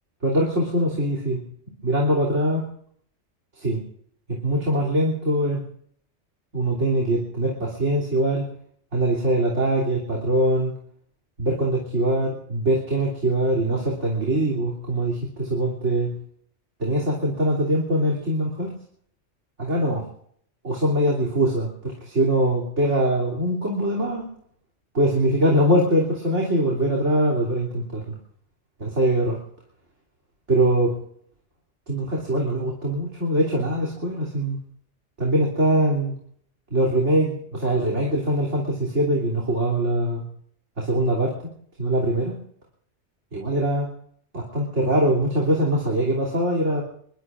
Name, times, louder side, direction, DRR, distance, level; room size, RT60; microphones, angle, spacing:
voice 1, 0.2-1.4 1.8-2.6 3.5-3.8 4.3-5.6 6.5-8.5 8.9-10.7 11.4-16.1 16.8-18.7 19.6-20.1 20.6-24.2 24.9-28.2 28.8-29.4 30.5-31.0 31.9-34.6 35.2-36.1 36.7-40.2 40.8-41.5 41.8-42.3 43.3-43.9 44.3-46.8, right 1 dB, 70° right, -2 dB, 3.5 m, -22 dB
25.5 x 22.0 x 2.5 m, 0.64 s
omnidirectional pair, 1.2 m